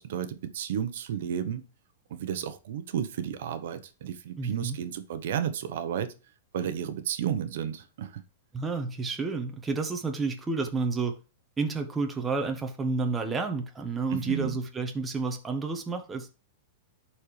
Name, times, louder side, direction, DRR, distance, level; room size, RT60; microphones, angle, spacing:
voice 1, 0.0-1.6 2.1-6.1 6.5-8.2 14.1-14.6, right 9 dB, 65° right, 1.0 m, -32 dB
voice 2, 4.4-4.8 8.5-11.1 11.6-16.3, right 4 dB, 10° right, 1.1 m, -30 dB
11.5 x 4.4 x 3.3 m
supercardioid pair, 155°, 0 cm